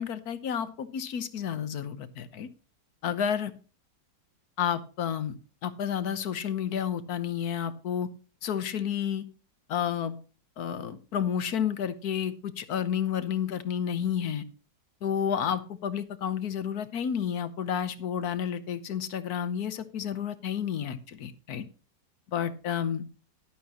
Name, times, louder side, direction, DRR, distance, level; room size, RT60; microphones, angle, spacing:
voice 1, 0.0-2.5 3.0-3.5 4.6-5.4 5.6-8.1 8.4-9.2 9.7-10.2 10.6-14.4 15.0-21.6 22.3-23.0, left 8 dB, 65° left, 1.4 m, -31 dB
12.0 x 11.5 x 3.0 m
omnidirectional pair, 1.9 m